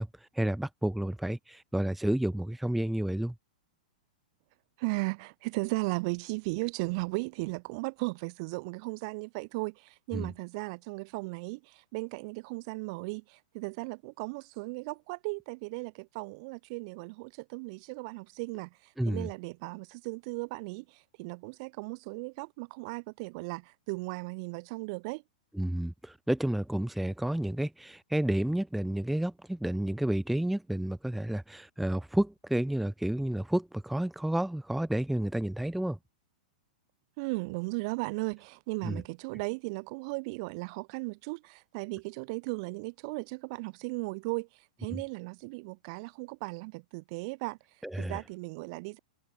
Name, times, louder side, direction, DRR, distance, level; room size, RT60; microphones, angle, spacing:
voice 1, 0.0-3.3 10.1-10.3 19.0-19.3 25.5-36.0 38.8-39.0 44.9-45.0 47.8-48.2, right 1 dB, ahead, 0.4 m, -31 dB
voice 2, 4.8-18.7 19.1-25.2 37.2-44.5 44.8-47.6 47.9-49.0, right 29 dB, 50° right, 0.9 m, -36 dB
hypercardioid pair, 115°, 4 cm